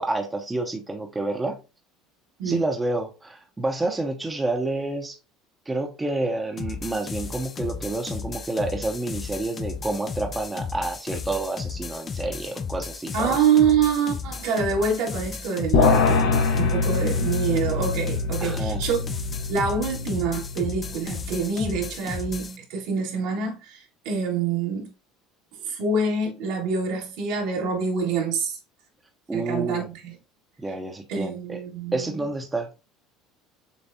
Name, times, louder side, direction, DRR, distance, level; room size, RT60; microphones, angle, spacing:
voice 1, 0.0-1.6 2.4-5.2 5.7-13.4 18.4-18.8 29.3-29.9 30.6-31.6 31.9-32.7, right 2 dB, 15° right, 0.7 m, -29 dB
sound 1, 6.6-22.6, left 5 dB, 30° left, 0.4 m, -34 dB
voice 2, 13.1-19.1 19.5-24.9 25.6-28.6 29.3-30.1 31.1-32.2, right 5 dB, 75° right, 1.9 m, -26 dB
sound 2, 15.7-21.2, left 5 dB, 65° left, 0.8 m, -24 dB
6.9 x 2.3 x 2.7 m
supercardioid pair, 115°, 0 cm